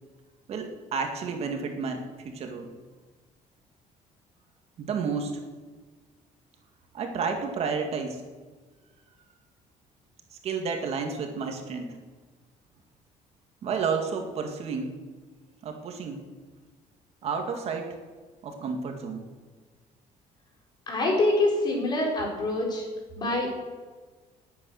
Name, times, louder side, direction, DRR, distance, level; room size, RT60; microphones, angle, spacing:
voice 1, 0.5-2.7 4.8-5.4 6.9-8.2 10.3-12.0 13.6-14.9 15.6-16.2 17.2-18.0 18.4-19.2, right 5 dB, 50° right, 3 dB, 2.1 m, -31 dB
voice 2, 20.9-22.8 23.2-23.6, left 2 dB, 30° left, -1 dB, 4.6 m, -25 dB
19.5 x 8.9 x 6.5 m, 1.4 s
cardioid pair, 165°, 14 cm